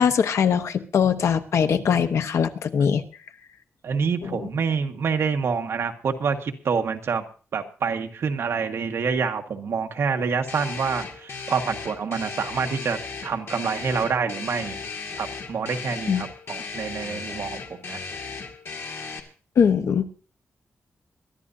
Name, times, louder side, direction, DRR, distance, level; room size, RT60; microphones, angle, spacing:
voice 1, 0.0-3.0 4.2-4.5 16.1-16.2 19.6-20.1, left 7 dB, 80° left, 9 dB, 1.0 m, -21 dB
voice 2, 3.8-7.2 7.5-14.8 15.2-18.0, right 5 dB, 65° right, 5 dB, 1.5 m, -27 dB
sound 1, 10.5-19.2, left 4 dB, 60° left, 2.0 m, -36 dB
22.5 x 12.5 x 2.7 m, 0.38 s
wide cardioid pair, 165°, 5 cm